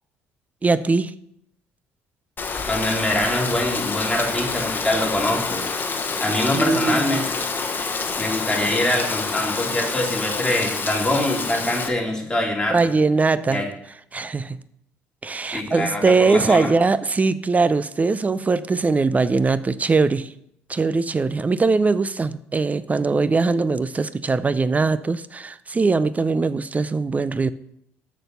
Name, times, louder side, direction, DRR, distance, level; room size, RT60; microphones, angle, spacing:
voice 1, 0.6-1.1 6.5-7.0 12.7-13.6 14.1-14.6 15.2-20.3 20.7-27.5, right 4 dB, 25° right, 16 dB, 0.5 m, -21 dB
Rain, 2.4-11.9, left 4 dB, 35° left, 1.2 m, -27 dB
voice 2, 2.7-5.6 6.2-7.3 8.2-12.7 13.5-13.7 15.5-16.7, left 1 dB, 15° left, -2 dB, 3.1 m, -24 dB
6.6 x 6.1 x 6.9 m, 0.73 s
supercardioid pair, 70°, 6 cm